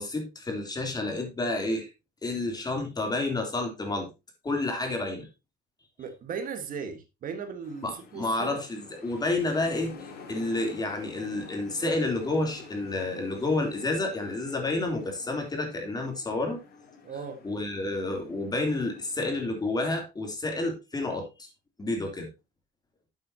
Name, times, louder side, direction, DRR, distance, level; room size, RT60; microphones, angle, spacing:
voice 1, 0.0-1.9 2.2-4.1 4.4-5.3 7.8-16.6 17.4-21.5 21.8-22.3, left 2 dB, 25° left, 3.4 m, -30 dB
voice 2, 6.0-8.6 17.0-17.4, right 6 dB, 55° right, 1.6 m, -37 dB
sound 1, 7.6-19.7, left 5 dB, 65° left, 3.3 m, -49 dB
11.0 x 7.8 x 2.9 m
cardioid pair, 110°, 17 cm